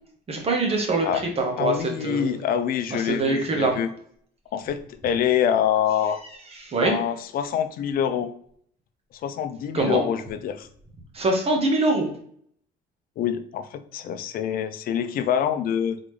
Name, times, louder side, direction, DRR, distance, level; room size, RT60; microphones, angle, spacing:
voice 1, 0.3-2.3 3.1-3.7 6.6-7.0 9.7-10.1 11.1-12.1, right 2 dB, 35° right, 2 dB, 1.3 m, -23 dB
voice 2, 1.6-3.9 4.5-6.2 6.8-8.3 9.2-10.7 13.2-16.0, left 9 dB, 60° left, 10 dB, 0.5 m, -25 dB
4.0 x 3.7 x 3.2 m, 0.63 s
cardioid pair, 110°, 17 cm